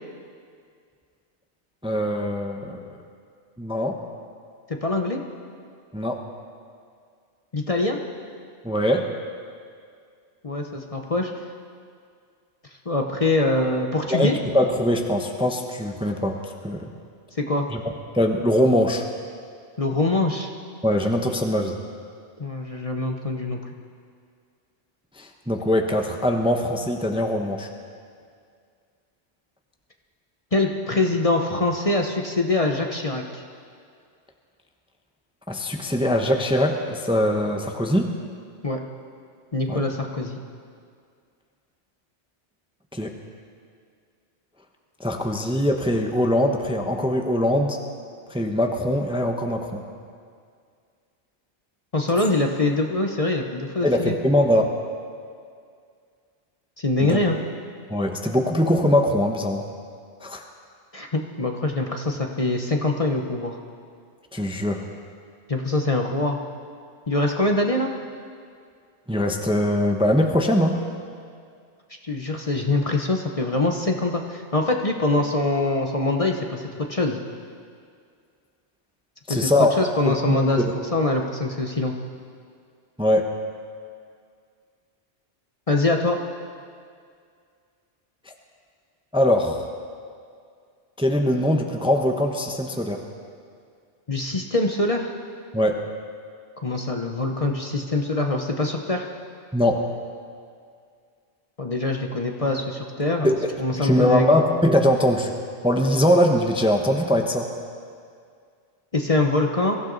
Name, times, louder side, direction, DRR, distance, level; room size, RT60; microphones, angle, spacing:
voice 1, 1.8-2.8 3.6-4.0 5.9-6.2 8.6-9.1 14.1-16.4 16.6-16.9 17.7-17.8 18.1-19.0 20.8-21.8 25.2-27.7 35.5-38.1 39.7-39.8 42.9-43.1 45.0-47.8 48.3-49.8 53.8-54.7 57.0-57.2 57.9-59.6 60.2-60.4 64.3-64.8 69.1-70.8 79.3-79.7 80.1-80.7 83.0-83.3 89.1-89.6 91.0-93.0 95.5-95.8 99.5-99.8 103.2-103.4 103.7-105.3 105.6-107.5, left 1 dB, 5° right, 3 dB, 0.9 m, -22 dB
voice 2, 4.7-5.2 7.5-8.0 10.4-11.3 12.9-14.4 17.4-17.7 19.8-20.5 22.4-23.6 30.5-33.4 38.6-38.8 39.5-40.4 51.9-54.2 56.8-57.4 60.9-63.6 65.5-66.4 67.1-67.9 72.0-77.2 79.3-79.5 79.8-80.6 80.9-81.9 85.7-86.2 94.1-95.1 96.6-99.1 101.6-103.3 103.6-104.3 108.9-109.8, left 2 dB, 35° left, 2 dB, 1.0 m, -24 dB
23.5 x 15.0 x 4.0 m, 2.2 s
omnidirectional pair, 1.2 m